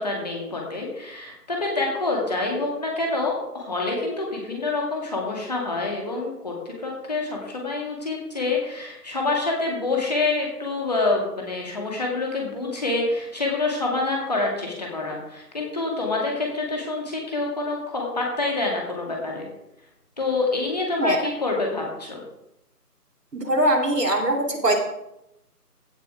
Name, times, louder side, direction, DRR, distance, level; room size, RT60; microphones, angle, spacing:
voice 1, 0.0-19.5 20.2-22.2, left 3 dB, 25° left, -1 dB, 2.3 m, -27 dB
voice 2, 23.3-24.8, right 1 dB, 80° right, 1 dB, 3.2 m, -21 dB
15.5 x 6.0 x 5.0 m, 0.84 s
figure-of-eight pair, 165°, 48 cm